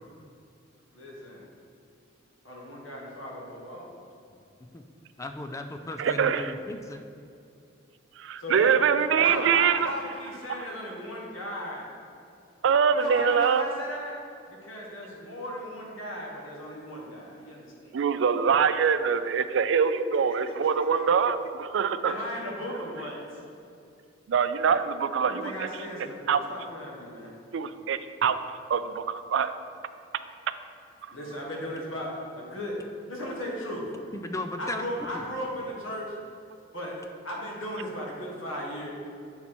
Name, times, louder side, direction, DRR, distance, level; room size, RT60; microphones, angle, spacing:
voice 1, 0.9-1.5 2.4-3.9 8.4-8.7 9.2-11.8 12.9-14.2 14.5-17.9 19.7-20.0 22.0-23.2 25.2-27.4 31.1-32.8 33.1-33.9 34.6-36.1 36.7-37.0 37.2-38.9, equal, 85° left, -2 dB, 1.5 m, -36 dB
voice 2, 5.2-7.0 34.1-34.8 35.1-35.3, left 2 dB, 15° left, 6 dB, 0.3 m, -36 dB
voice 3, 6.0-6.5 8.2-9.9 12.6-13.6 17.9-22.1 24.3-25.5 26.3-26.4 27.5-28.4 28.7-29.0 29.3-29.5, right 6 dB, 65° right, 11 dB, 0.3 m, -24 dB
8.5 x 4.1 x 4.3 m, 2.5 s
head